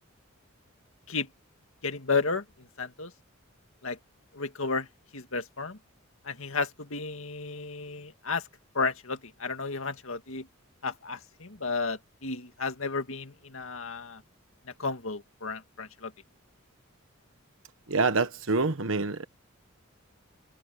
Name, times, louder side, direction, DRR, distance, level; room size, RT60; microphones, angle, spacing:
voice 1, 1.8-2.4 2.8-3.1 3.8-4.0 4.3-4.9 5.1-5.8 6.3-8.4 8.7-10.5 10.8-14.2 14.8-16.1, left 4 dB, 70° left, 2.1 m, -32 dB
voice 2, 17.9-19.3, right 3 dB, 70° right, 1.2 m, -26 dB
head